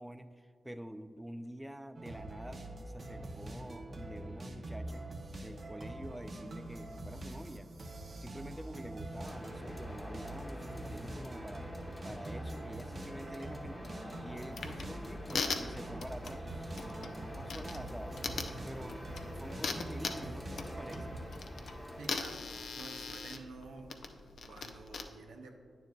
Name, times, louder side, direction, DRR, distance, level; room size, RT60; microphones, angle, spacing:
voice 1, 0.0-5.0 5.4-7.7 8.2-11.7 12.0-13.9 14.2-16.5 16.8-18.1 18.6-19.0 19.3-21.2, right 1 dB, 10° right, 10 dB, 0.3 m, -47 dB
sound 1, 1.9-21.3, right 1 dB, 55° right, 0.8 m, -44 dB
sound 2, 9.2-22.2, left 1 dB, 25° left, 1.0 m, -47 dB
sound 3, 14.5-25.0, left 4 dB, 75° left, 0.5 m, -41 dB
voice 2, 22.0-23.9 24.2-25.5, right 3 dB, 90° right, 3 dB, 0.6 m, -50 dB
9.1 x 7.1 x 2.3 m, 2.4 s
supercardioid pair, 45°, 0 cm